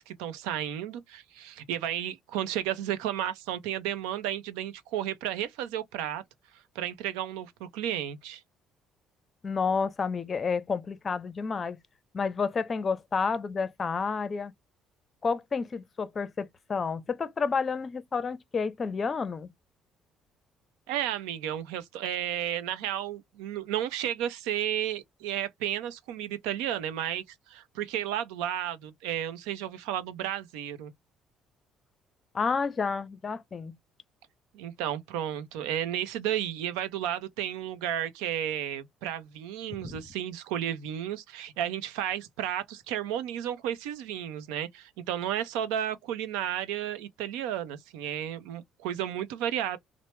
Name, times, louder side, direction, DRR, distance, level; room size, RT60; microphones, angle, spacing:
voice 1, 0.0-6.2 6.5-8.4 20.9-30.9 34.5-49.8, right 11 dB, 90° right, 0.6 m, -33 dB
voice 2, 9.4-11.8 12.1-14.5 15.2-19.5 32.3-33.8 39.7-40.0, left 5 dB, 40° left, 0.5 m, -30 dB
3.1 x 2.0 x 3.0 m
supercardioid pair, 75°, 0 cm